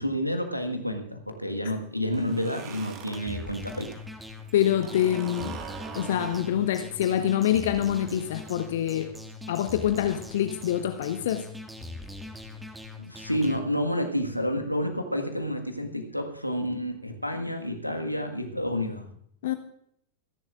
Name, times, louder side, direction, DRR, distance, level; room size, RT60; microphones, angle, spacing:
voice 1, 0.0-3.9 13.0-19.1, equal, 90° left, 5 dB, 1.6 m, -29 dB
sound 1, 2.0-4.0 4.3-9.0, right 7 dB, 35° right, 1.7 m, -43 dB
sound 2, 3.1-13.6, left 2 dB, 5° right, 1.9 m, -42 dB
voice 2, 4.5-5.6 5.9-9.1 9.5-11.4 19.4-19.5, left 11 dB, 55° left, 9 dB, 0.8 m, -25 dB
26.0 x 10.5 x 2.5 m, 0.68 s
figure-of-eight pair, 90°, 0 cm